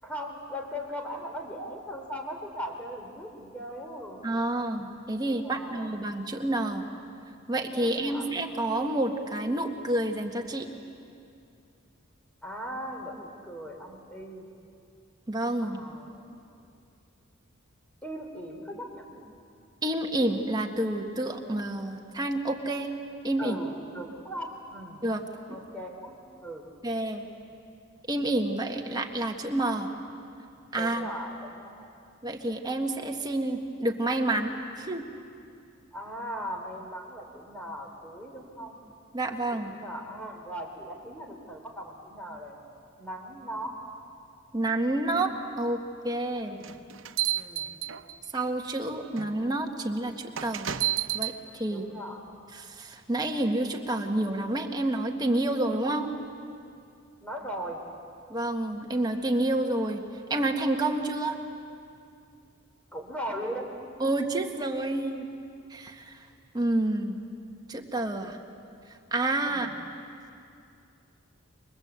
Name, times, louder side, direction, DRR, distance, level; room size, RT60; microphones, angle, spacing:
voice 1, 0.0-4.3 5.4-5.9 7.8-8.3 12.4-14.5 15.6-16.4 18.0-19.3 23.4-25.0 25.5-26.7 30.7-31.9 35.9-38.7 39.5-42.7 43.0-43.8 46.3-46.7 47.3-47.8 51.7-52.3 57.2-57.8 62.9-63.7 69.4-69.7, equal, 5° left, 1 dB, 3.6 m, -39 dB
voice 2, 4.2-6.9 7.5-10.7 15.3-15.8 19.8-22.9 23.2-23.6 25.0-25.2 26.8-27.3 28.1-29.9 30.7-31.1 32.2-35.0 39.1-39.7 44.5-45.3 45.6-45.8 46.0-46.6 48.3-50.7 51.1-51.9 52.5-56.1 58.3-60.0 60.3-61.4 64.0-65.3 65.7-66.2 66.5-67.2 67.7-68.4 69.1-69.7, right 1 dB, 20° right, 3 dB, 1.7 m, -29 dB
sound 1, 46.6-48.4 49.2-49.3 50.4-51.4, right 12 dB, 80° right, 1.0 m, -30 dB
29.0 x 24.0 x 8.3 m, 2.5 s
head